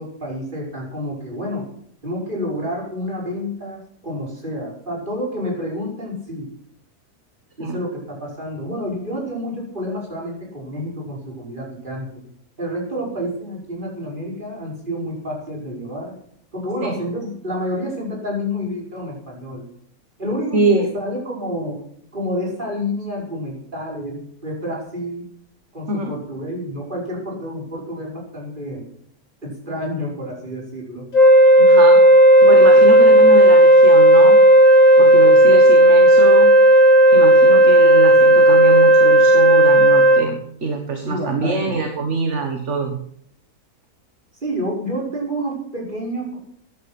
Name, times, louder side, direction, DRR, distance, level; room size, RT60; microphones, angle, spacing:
voice 1, 0.0-1.6 2.0-6.5 7.6-12.1 12.6-16.2 16.5-19.7 20.2-21.8 22.1-25.3 25.7-28.8 29.4-31.1 41.1-41.8 44.4-46.4, equal, 30° right, -3 dB, 5.6 m, -29 dB
voice 2, 20.5-20.9 25.9-26.1 31.6-32.0 32.4-34.4 35.0-36.5 37.1-43.0, right 3 dB, 50° right, 4 dB, 1.9 m, -24 dB
Wind instrument woodwind instrument, 31.1-40.3, right 1 dB, 60° left, 2.3 m, -10 dB
15.0 x 10.5 x 6.1 m, 0.66 s
omnidirectional pair, 1.6 m